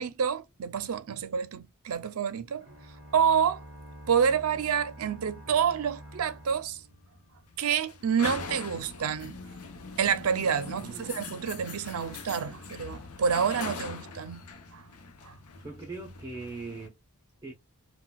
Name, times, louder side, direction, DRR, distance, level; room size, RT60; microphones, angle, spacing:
voice 1, 0.0-2.7 3.1-3.6 4.1-6.8 7.6-9.4 10.0-14.4 14.7-14.8 15.3-15.4, right 7 dB, 75° right, 0.5 m, -28 dB
sound 1, 2.6-7.6, equal, 35° left, 1.5 m, -48 dB
sound 2, 6.2-16.9, left 4 dB, 80° left, 0.7 m, -42 dB
voice 2, 10.8-11.1 15.6-17.0 17.4-17.5, right 3 dB, 15° right, 0.6 m, -40 dB
3.9 x 2.2 x 2.2 m
head